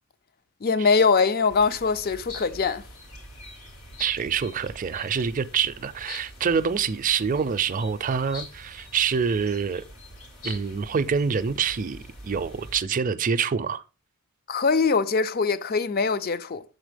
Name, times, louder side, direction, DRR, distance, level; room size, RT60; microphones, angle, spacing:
voice 1, 0.6-2.8 14.5-16.6, left 4 dB, 45° left, 0.5 m, -22 dB
sound 1, 1.5-12.8, left 1 dB, 80° left, 3.0 m, -44 dB
voice 2, 4.0-9.8 10.4-12.0 12.2-13.8, right 6 dB, 40° right, 0.4 m, -26 dB
6.9 x 4.1 x 5.0 m
head